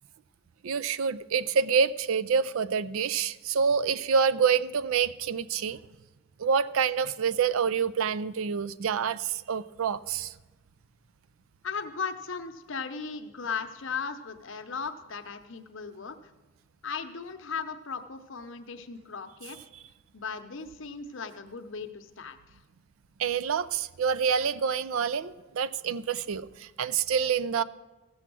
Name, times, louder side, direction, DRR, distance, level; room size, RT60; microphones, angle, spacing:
voice 1, 0.6-5.8 6.4-10.3 23.2-27.6, right 6 dB, 65° right, 15 dB, 0.4 m, -27 dB
voice 2, 11.6-16.2 16.8-19.6 20.1-22.6, left 5 dB, 55° left, 8 dB, 0.8 m, -37 dB
15.5 x 7.1 x 6.1 m, 1.1 s
head